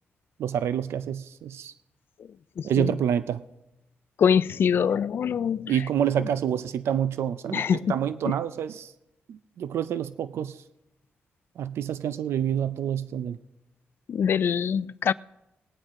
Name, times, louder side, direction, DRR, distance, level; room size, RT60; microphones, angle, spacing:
voice 1, 0.4-1.7 2.6-3.4 5.7-8.9 9.3-10.5 11.6-13.4, right 9 dB, 80° right, 0.5 m, -27 dB
voice 2, 4.2-5.7 7.5-7.8 14.1-15.1, left 7 dB, 60° left, 0.4 m, -23 dB
20.0 x 8.8 x 3.7 m
cardioid pair, 90°, 4 cm